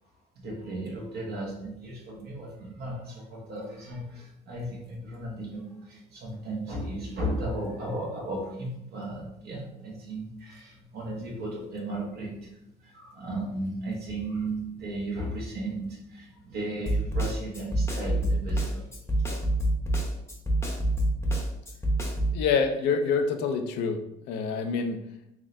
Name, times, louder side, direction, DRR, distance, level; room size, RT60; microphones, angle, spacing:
voice 1, 0.3-18.9, right 1 dB, 65° right, -3 dB, 1.2 m, -35 dB
Snare drum, 16.9-22.4, right 1 dB, 15° left, 0.7 m, -26 dB
voice 2, 22.3-24.0 24.3-25.0, left 5 dB, 90° left, 5 dB, 0.5 m, -26 dB
3.6 x 3.2 x 2.6 m, 0.83 s
cardioid pair, 110°, 17 cm